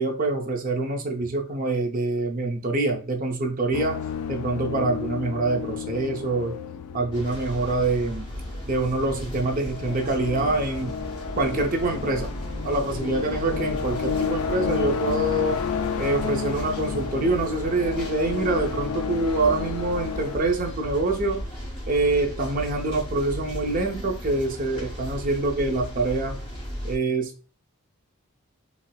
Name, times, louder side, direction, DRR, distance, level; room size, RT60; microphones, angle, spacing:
voice 1, 0.0-4.0 4.3-6.5 6.9-8.2 8.7-11.0 11.4-12.3 12.6-15.6 16.0-21.4 21.9-26.4 26.8-27.5, right 2 dB, 40° right, 3 dB, 0.5 m, -25 dB
sound 1, 3.7-20.4, left 6 dB, 80° left, 0.3 m, -32 dB
sound 2, 7.1-27.0, equal, 20° left, 0.9 m, -36 dB
4.1 x 2.0 x 2.2 m, 0.37 s
head